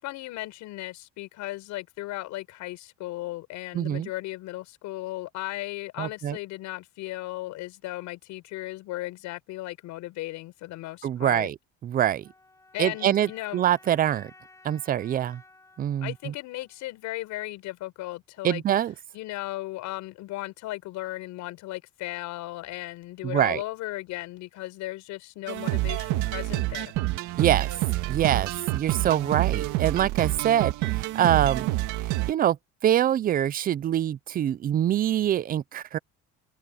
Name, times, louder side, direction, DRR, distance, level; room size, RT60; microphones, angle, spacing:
voice 1, 0.0-11.5 12.7-13.6 16.0-18.6 19.1-26.9, left 17 dB, 70° left, 6.7 m, -36 dB
voice 2, 3.7-4.1 6.0-6.4 11.0-11.6 11.8-12.3 12.8-14.3 14.6-15.4 15.8-16.3 18.4-18.9 23.2-23.6 27.4-27.7 28.1-31.7 32.0-32.6 32.8-36.0, right 11 dB, 30° right, 0.5 m, -25 dB
sound 1, 12.2-17.2, left 2 dB, 10° left, 6.9 m, -55 dB
sound 2, 25.5-32.3, right 17 dB, 80° right, 1.9 m, -28 dB
cardioid pair, 165°, 30 cm